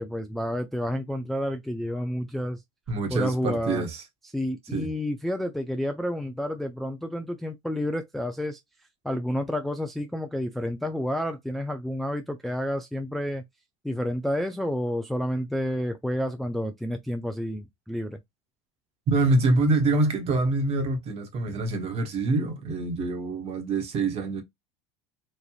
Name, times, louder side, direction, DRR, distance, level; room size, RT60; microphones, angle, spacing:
voice 1, 0.0-2.6 3.1-3.9 4.3-8.6 9.0-13.4 13.8-18.2, equal, ahead, 0.3 m, -30 dB
voice 2, 2.9-4.0 4.7-4.9 19.1-24.4, right 2 dB, 40° right, 1.2 m, -25 dB
3.1 x 2.5 x 2.3 m
supercardioid pair, 105°, 16 cm